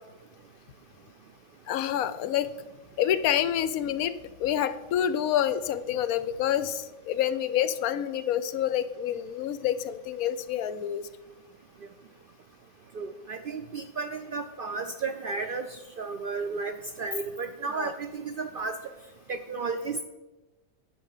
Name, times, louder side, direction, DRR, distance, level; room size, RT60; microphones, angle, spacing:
voice 1, 1.7-2.5 3.0-11.0 17.8-17.9, left 10 dB, 85° left, 13 dB, 1.1 m, -28 dB
voice 2, 12.9-18.8 19.3-20.0, right 4 dB, 65° right, 7 dB, 0.5 m, -33 dB
10.5 x 5.4 x 6.5 m, 1.1 s
omnidirectional pair, 1.5 m